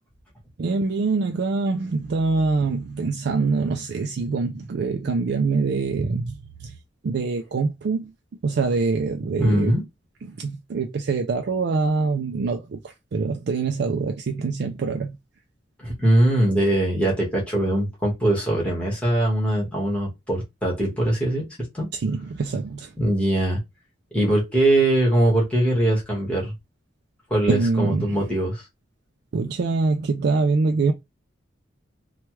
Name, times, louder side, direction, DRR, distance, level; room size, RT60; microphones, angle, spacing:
voice 1, 0.6-6.7 7.0-8.1 8.4-9.8 10.2-15.2 21.9-22.9 27.5-28.2 29.3-30.9, right 4 dB, 55° right, 0.3 m, -24 dB
voice 2, 9.4-9.8 15.8-21.5 21.7-21.9 23.0-23.6 24.1-26.5 27.3-28.6, right 1 dB, 5° left, 1.2 m, -21 dB
3.1 x 2.3 x 3.0 m
head